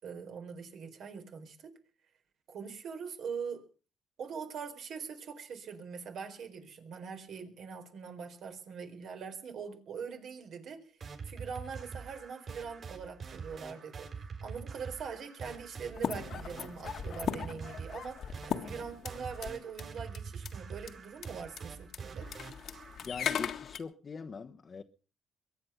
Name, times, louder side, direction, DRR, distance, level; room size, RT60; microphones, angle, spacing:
voice 1, 0.0-1.7 2.5-3.6 4.2-11.0 11.2-14.1 14.4-22.3, right 6 dB, 70° right, 4.3 m, -43 dB
sound 1, 11.0-23.1, right 5 dB, 50° right, 6.2 m, -45 dB
sound 2, 15.9-19.5 19.8-19.9 20.1-20.5 20.9-21.0 21.2-21.3 21.6-21.7 21.9-23.8, left 8 dB, 65° left, 1.6 m, -38 dB
voice 2, 23.1-24.8, left 5 dB, 40° left, 1.1 m, -42 dB
23.0 x 9.5 x 5.9 m
cardioid pair, 90°, 0 cm